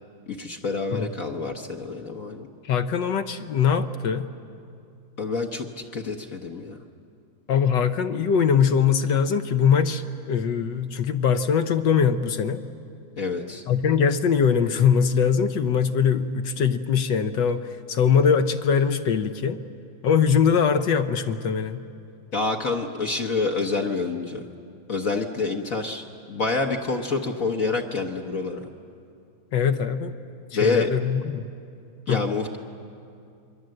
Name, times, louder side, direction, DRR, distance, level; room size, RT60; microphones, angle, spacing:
voice 1, 0.3-2.5 5.2-5.7 5.9-6.8 13.2-13.6 22.3-24.4 24.9-28.6 30.5-30.9 32.1-32.6, left 3 dB, 45° left, 2 dB, 1.4 m, -27 dB
voice 2, 2.6-4.3 7.5-12.6 13.7-19.6 20.0-21.8 29.5-30.1 30.5-31.5 32.1-32.2, left 7 dB, 65° left, 9 dB, 1.5 m, -22 dB
28.0 x 23.0 x 7.8 m, 2.4 s
omnidirectional pair, 2.2 m